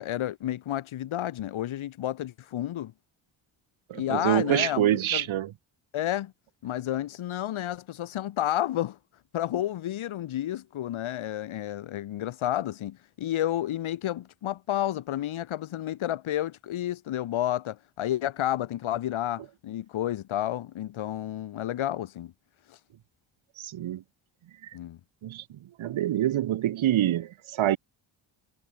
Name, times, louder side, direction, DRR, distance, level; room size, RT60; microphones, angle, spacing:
voice 1, 0.0-2.9 3.9-5.3 5.9-6.3 6.6-9.0 9.3-22.3 22.7-22.8 24.7-25.0, left 12 dB, 80° left, 4.1 m, -31 dB
voice 2, 3.9-5.5 23.6-24.0 25.2-25.4 25.8-27.8, right 12 dB, 75° right, 2.6 m, -26 dB
cardioid pair, 105°, 47 cm